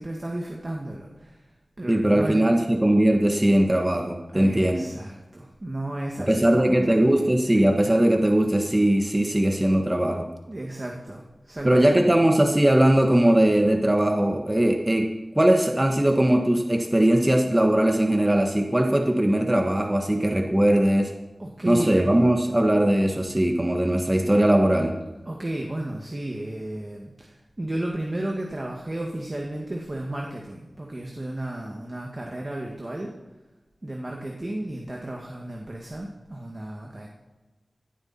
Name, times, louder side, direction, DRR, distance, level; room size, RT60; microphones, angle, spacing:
voice 1, 0.0-1.4 1.8-2.7 4.3-7.6 10.5-12.1 21.4-22.1 25.3-33.2 33.8-37.1, right 1 dB, 35° right, 0 dB, 2.0 m, -33 dB
voice 2, 1.9-4.8 6.2-10.3 11.6-21.1 21.7-25.0, right 1 dB, 20° right, 3 dB, 1.3 m, -20 dB
17.5 x 11.5 x 4.4 m, 1.1 s
wide cardioid pair, 65°, 0 cm